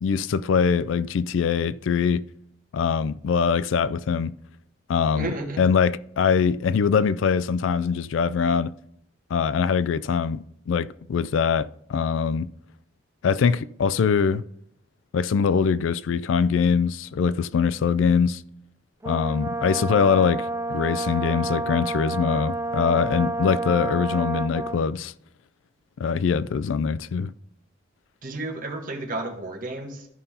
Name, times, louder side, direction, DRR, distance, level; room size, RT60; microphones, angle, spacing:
voice 1, 0.0-2.2 2.7-4.3 4.9-5.3 5.6-8.7 9.3-12.5 13.2-14.4 15.1-18.4 19.1-25.1 26.0-27.3, left 6 dB, 80° left, 0.3 m, -23 dB
voice 2, 5.1-5.6 28.2-30.1, right 2 dB, 45° right, 1.3 m, -32 dB
Brass instrument, 19.0-24.9, right 2 dB, 15° right, 0.4 m, -29 dB
13.5 x 5.4 x 2.7 m
head